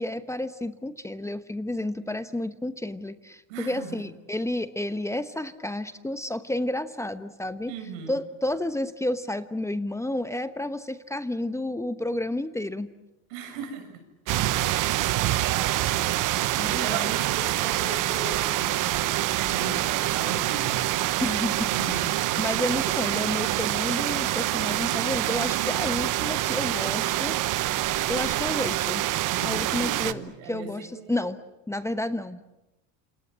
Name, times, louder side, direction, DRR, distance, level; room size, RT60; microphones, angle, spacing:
voice 1, 0.0-7.7 8.1-12.9 16.6-17.1 21.2-22.1 22.4-27.4 28.1-29.1 29.4-31.4 31.7-32.5, left 1 dB, 5° left, 11 dB, 1.0 m, -31 dB
voice 2, 3.5-4.0 7.7-8.2 13.3-14.0 14.6-16.2 16.7-20.9 21.7-22.3 29.3-31.3, right 5 dB, 85° right, 7 dB, 6.7 m, -38 dB
sound 1, 14.3-30.1, right 15 dB, 55° right, 1.1 m, -26 dB
28.0 x 26.5 x 7.5 m, 0.98 s
supercardioid pair, 115°, 38 cm